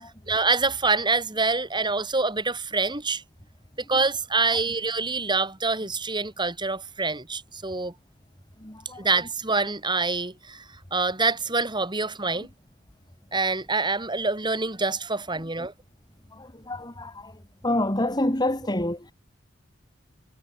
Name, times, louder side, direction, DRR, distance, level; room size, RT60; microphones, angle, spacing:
voice 1, 0.3-3.2 3.9-7.9 9.0-10.6 10.9-12.5 13.3-15.7, right 3 dB, 25° right, 5.2 m, -26 dB
voice 2, 8.6-9.0 16.3-17.3 17.6-19.1, left 1 dB, 20° left, 4.3 m, -27 dB
head